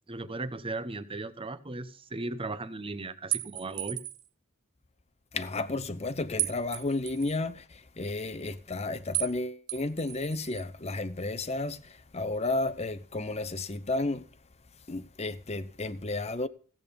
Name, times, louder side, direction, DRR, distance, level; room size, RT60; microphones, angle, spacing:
voice 1, 0.1-4.0, right 2 dB, 25° right, 0.8 m, -37 dB
sound 1, 3.3-4.3 6.4-7.4 9.1-9.4 9.7-10.6, right 16 dB, 85° right, 0.5 m, -34 dB
voice 2, 5.3-11.8 12.1-14.2 14.9-16.5, left 2 dB, 30° left, 0.8 m, -32 dB
16.0 x 8.6 x 5.3 m
head